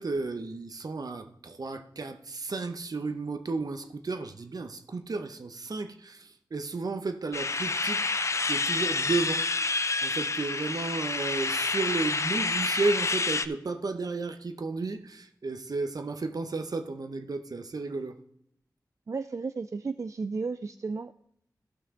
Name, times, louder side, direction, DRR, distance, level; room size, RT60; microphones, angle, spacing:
voice 1, 0.0-9.5 10.0-18.2, right 3 dB, 65° right, 0.8 m, -33 dB
sound 1, 7.3-13.5, left 3 dB, 45° left, 0.5 m, -28 dB
voice 2, 19.1-21.1, right 4 dB, 50° right, 0.3 m, -33 dB
15.0 x 5.9 x 3.7 m
wide cardioid pair, 70°, 7 cm